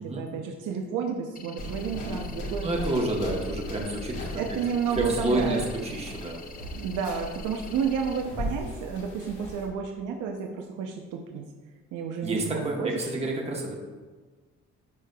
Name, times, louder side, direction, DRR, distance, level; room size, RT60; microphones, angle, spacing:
voice 1, 0.0-2.9 4.4-5.6 6.7-11.4 11.9-12.9, right 6 dB, 85° right, 2 dB, 0.6 m, -31 dB
sound 1, 1.4-8.2, left 6 dB, 30° left, 0.5 m, -48 dB
sound 2, 1.6-9.7, left 1 dB, 85° left, 1.5 m, -37 dB
voice 2, 2.6-4.4 4.9-6.4 12.2-13.7, right 2 dB, 20° right, -1 dB, 1.0 m, -29 dB
10.5 x 4.8 x 2.3 m, 1.4 s
cardioid pair, 90°, 30 cm